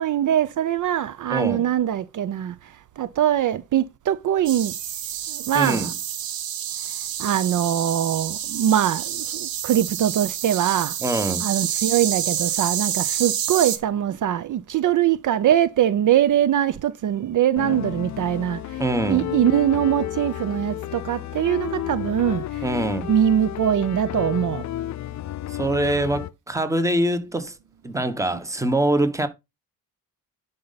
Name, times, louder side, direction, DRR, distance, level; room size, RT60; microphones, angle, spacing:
voice 1, 0.0-4.8 5.3-5.9 7.2-11.0 11.4-18.8 19.1-22.7 23.1-24.7, right 10 dB, 60° right, 0.6 m, -22 dB
voice 2, 1.3-1.7 5.5-5.9 11.0-11.5 18.8-19.3 22.6-23.1 25.5-27.6 27.8-29.3, right 1 dB, 10° right, 1.2 m, -24 dB
sound 1, 4.5-13.8, right 10 dB, 80° right, 1.3 m, -28 dB
sound 2, 17.6-26.3, left 12 dB, 50° left, 0.5 m, -31 dB
10.0 x 5.4 x 4.0 m
cardioid pair, 140°, 35 cm